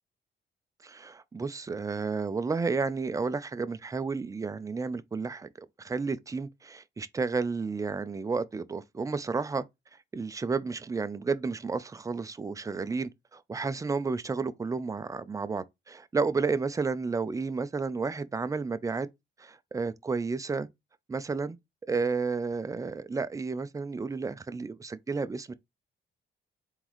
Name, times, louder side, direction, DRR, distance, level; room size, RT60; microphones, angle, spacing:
voice 1, 0.8-9.6 10.1-19.1 19.4-20.7 21.1-21.6 21.8-25.5, right 4 dB, 15° right, 0.4 m, -32 dB
3.8 x 3.6 x 3.0 m
cardioid pair, 90°, 20 cm